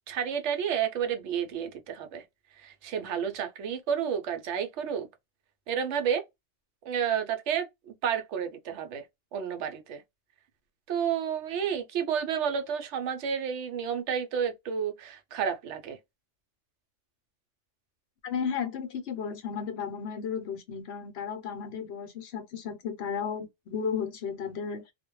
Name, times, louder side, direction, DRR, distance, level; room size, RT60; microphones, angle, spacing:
voice 1, 0.1-2.2 2.5-5.1 5.7-6.2 6.9-9.1 9.3-10.0 10.9-16.0, right 8 dB, 75° right, 0.9 m, -31 dB
voice 2, 18.2-24.9, left 6 dB, 65° left, 0.8 m, -34 dB
2.4 x 2.1 x 2.9 m
omnidirectional pair, 1.2 m